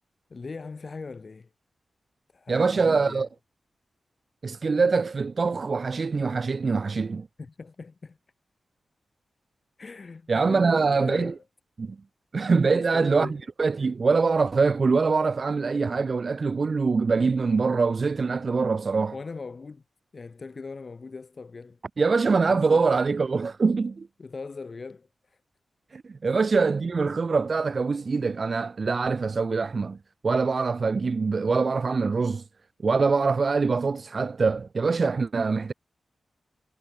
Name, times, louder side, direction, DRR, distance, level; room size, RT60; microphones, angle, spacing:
voice 1, 0.3-1.5 2.3-3.3 7.4-8.2 9.8-11.4 12.6-13.4 19.1-19.8 20.1-21.8 22.5-22.9 24.2-25.4 26.2-26.5, left 4 dB, 40° left, 7.4 m, -40 dB
voice 2, 2.5-3.3 4.4-7.3 10.3-11.3 11.8-12.0 12.3-19.1 22.0-24.1 25.9-30.0 30.2-32.4 32.8-35.7, right 4 dB, 40° right, 0.8 m, -24 dB
wide cardioid pair, 165°, 0 cm